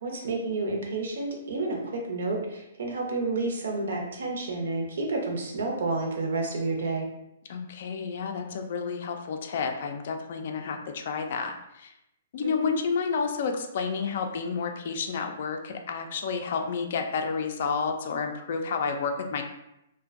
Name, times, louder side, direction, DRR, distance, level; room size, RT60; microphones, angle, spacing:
voice 1, 0.0-7.1 12.4-12.7, right 3 dB, 75° right, 0 dB, 0.6 m, -30 dB
voice 2, 7.5-11.9 12.3-19.4, left 5 dB, 55° left, 5 dB, 0.3 m, -30 dB
2.5 x 2.1 x 2.4 m, 0.84 s
hypercardioid pair, 160°, 0 cm